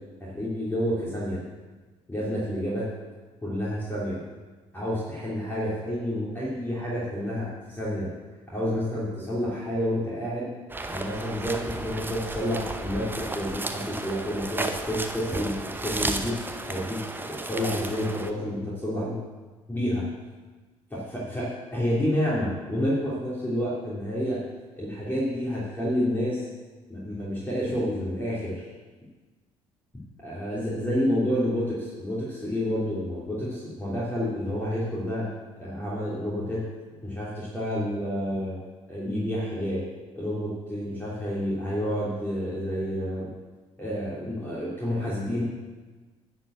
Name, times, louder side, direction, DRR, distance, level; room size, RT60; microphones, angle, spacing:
voice 1, 0.2-1.4 2.1-2.9 3.4-4.2 4.7-8.1 8.5-10.5 10.9-17.0 17.3-19.2 19.7-20.0 20.9-24.4 24.8-26.5 26.9-28.7 30.2-35.3 35.6-36.6 37.0-38.5 38.9-39.8 40.1-43.3 43.8-45.4, equal, 10° left, -8 dB, 3.2 m, -29 dB
sound 1, 10.7-18.3, right 2 dB, 10° right, 0.9 m, -33 dB
11.0 x 5.1 x 7.6 m, 1.3 s
figure-of-eight pair, 50°, 16 cm